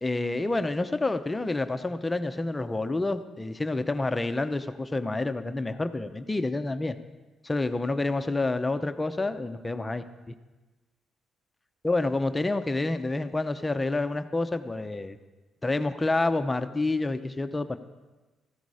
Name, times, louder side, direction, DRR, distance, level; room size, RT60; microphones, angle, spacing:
voice 1, 0.0-7.0 7.4-10.3 11.8-15.2 15.6-17.8, left 2 dB, 15° left, 9 dB, 0.7 m, -28 dB
14.5 x 12.5 x 4.9 m, 1.2 s
cardioid pair, 90°, 0 cm